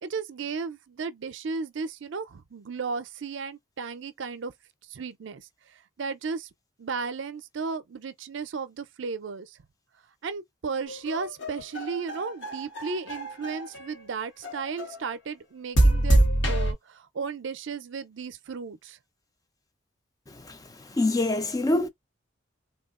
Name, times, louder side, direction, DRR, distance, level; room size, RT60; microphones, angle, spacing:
voice 1, 0.0-4.5 4.9-6.5 6.8-9.6 10.2-19.0, right 5 dB, 70° right, 0.5 m, -35 dB
sound 1, 10.9-13.9 14.4-15.0 15.8-16.7, right 1 dB, 65° left, 1.0 m, -25 dB
voice 2, 21.0-21.9, left 2 dB, 20° left, 0.4 m, -24 dB
3.7 x 2.3 x 2.4 m
head